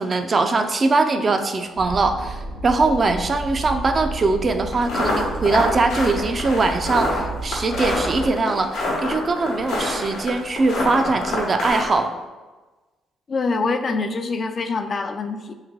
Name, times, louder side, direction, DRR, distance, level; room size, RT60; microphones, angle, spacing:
voice 1, 0.0-12.1, right 3 dB, 35° right, 7 dB, 0.4 m, -21 dB
sound 1, 1.7-8.3, right 2 dB, 80° right, 1.0 m, -32 dB
sound 2, 4.7-12.0, left 1 dB, 90° left, 1.0 m, -26 dB
voice 2, 13.3-15.5, left 4 dB, 45° left, 8 dB, 0.3 m, -25 dB
3.4 x 3.2 x 3.6 m, 1.2 s
cardioid pair, 90°, 0 cm